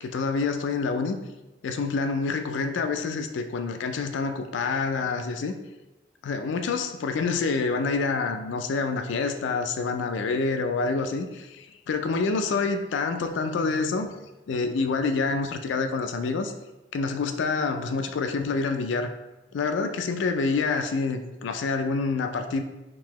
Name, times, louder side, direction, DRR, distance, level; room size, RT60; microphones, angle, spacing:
voice 1, 0.0-1.2 1.6-5.6 6.2-14.1 14.5-16.5 16.9-19.1 19.5-22.6, left 4 dB, 90° left, 7 dB, 0.3 m, -27 dB
3.8 x 2.7 x 2.9 m, 1.1 s
head